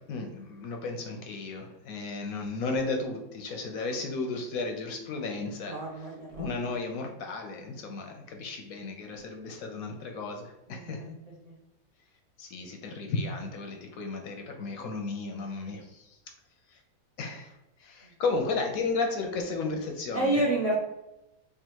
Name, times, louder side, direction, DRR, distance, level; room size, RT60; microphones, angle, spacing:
voice 1, 0.0-6.1 6.4-11.1 12.4-16.2 16.7-16.8 17.2-17.5 17.8-20.4, left 3 dB, 70° left, 3 dB, 0.9 m, -34 dB
voice 2, 5.7-6.5 10.7-11.1 11.5-11.6 20.1-20.8, right 2 dB, 50° right, -4 dB, 0.4 m, -29 dB
3.4 x 2.3 x 4.4 m, 0.93 s
omnidirectional pair, 1.7 m